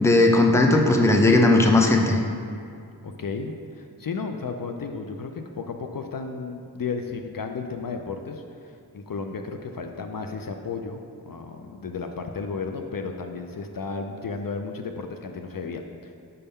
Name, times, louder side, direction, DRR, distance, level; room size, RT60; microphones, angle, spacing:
voice 1, 0.0-2.2, left 2 dB, 5° left, 2 dB, 0.5 m, -17 dB
voice 2, 3.0-8.4 8.9-16.2, left 4 dB, 60° left, 5 dB, 0.5 m, -33 dB
5.5 x 3.6 x 5.4 m, 2.4 s
wide cardioid pair, 50°, 40 cm